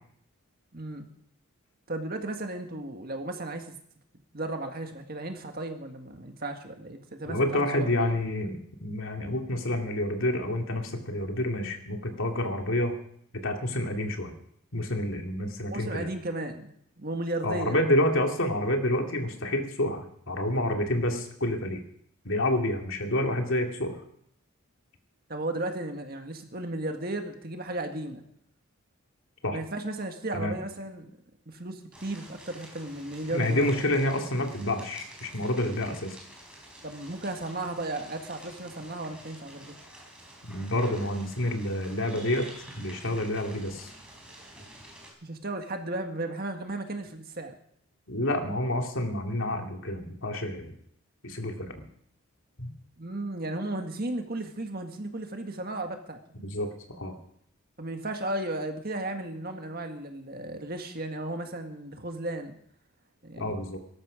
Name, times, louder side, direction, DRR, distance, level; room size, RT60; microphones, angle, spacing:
voice 1, 0.7-1.1 1.9-3.8 4.3-8.1 15.7-17.7 25.3-28.2 29.5-31.1 31.5-33.7 36.8-39.7 45.2-47.5 53.0-56.2 57.8-62.5 63.2-63.6, right 2 dB, 45° right, 5 dB, 1.8 m, -35 dB
voice 2, 7.3-12.9 13.4-14.3 14.7-16.1 17.4-21.8 22.2-24.0 29.4-29.6 30.3-30.6 33.3-36.1 40.4-42.5 42.8-43.9 48.1-50.7 51.2-51.8 52.6-52.7 56.4-57.1 63.4-63.8, left 1 dB, 65° left, 3 dB, 2.4 m, -28 dB
sound 1, 31.9-45.1, right 1 dB, 5° right, 3.9 m, -49 dB
18.0 x 13.5 x 5.1 m, 0.68 s
head